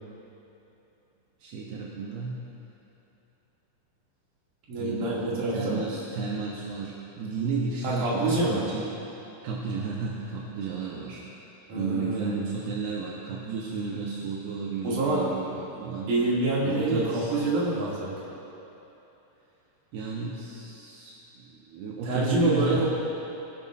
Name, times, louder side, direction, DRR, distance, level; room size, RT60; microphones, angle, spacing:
voice 1, 1.4-2.5 4.8-9.0 9.4-16.2 16.6-17.3 19.9-22.9, right 4 dB, 80° right, -3 dB, 2.7 m, -33 dB
voice 2, 4.7-5.8 7.8-8.7 11.7-12.4 14.8-15.2 16.1-18.2 22.0-22.9, right 2 dB, 55° right, -6 dB, 3.5 m, -26 dB
22.0 x 11.0 x 2.5 m, 3.0 s
omnidirectional pair, 4.8 m